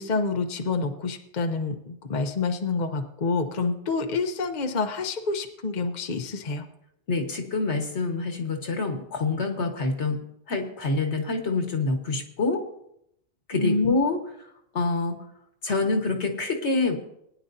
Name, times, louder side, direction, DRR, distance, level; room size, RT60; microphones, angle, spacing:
voice 1, 0.0-6.7 13.5-14.0, left 3 dB, 45° left, 5 dB, 0.9 m, -28 dB
voice 2, 7.1-10.2 10.5-12.6 13.5-14.2 14.7-15.2 15.6-17.0, left 3 dB, 75° left, 4 dB, 1.7 m, -26 dB
20.0 x 10.0 x 2.7 m, 0.76 s
omnidirectional pair, 1.2 m